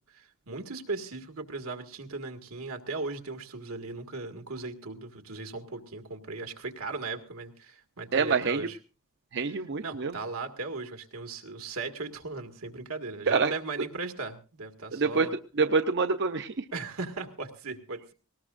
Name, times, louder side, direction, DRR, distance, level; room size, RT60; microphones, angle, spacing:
voice 1, 0.1-8.8 9.8-15.3 16.7-18.1, right 3 dB, 85° right, 5 dB, 1.9 m, -37 dB
voice 2, 8.1-8.7 9.3-10.1 13.3-13.5 14.9-15.3 15.6-16.6, right 4 dB, 55° right, 8 dB, 0.6 m, -26 dB
19.5 x 19.0 x 2.5 m, 0.34 s
head